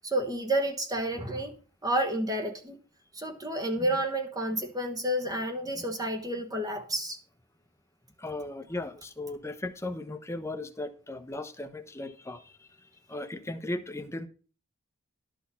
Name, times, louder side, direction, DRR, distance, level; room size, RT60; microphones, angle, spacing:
voice 1, 0.0-2.8 3.1-7.2, right 1 dB, 15° right, 1.1 m, -30 dB
voice 2, 8.2-14.3, left 2 dB, 15° left, 0.9 m, -37 dB
12.0 x 6.3 x 5.7 m
head